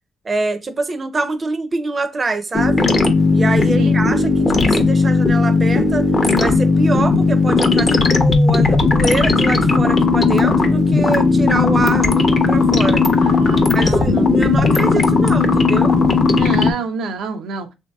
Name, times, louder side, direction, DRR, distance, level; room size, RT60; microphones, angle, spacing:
voice 1, 0.2-2.9 3.3-6.1 6.4-13.0 13.7-16.0, right 3 dB, 30° right, 0.5 m, -25 dB
sound 1, 2.5-16.7, left 3 dB, 35° left, 0.6 m, -15 dB
voice 2, 13.2-14.2 16.3-17.7, right 4 dB, 85° right, 0.4 m, -28 dB
3.0 x 2.7 x 2.2 m
cardioid pair, 90°, 0 cm